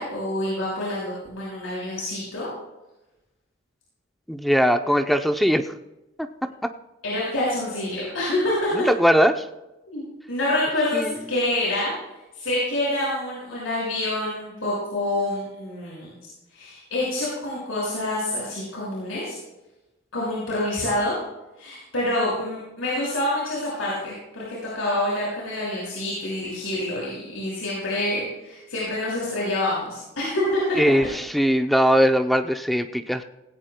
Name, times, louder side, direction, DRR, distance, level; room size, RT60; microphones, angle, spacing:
voice 1, 0.0-2.5 7.0-8.7 9.9-10.0 10.3-11.9 12.3-16.1 16.5-19.3 20.1-21.2 21.6-30.6, left 1 dB, 80° left, -7 dB, 5.7 m, -27 dB
voice 2, 4.3-5.7 6.2-6.3 6.6-6.7 8.9-9.4 10.9-11.2 30.8-33.2, equal, ahead, 6 dB, 0.5 m, -20 dB
18.0 x 16.5 x 2.2 m, 0.99 s
head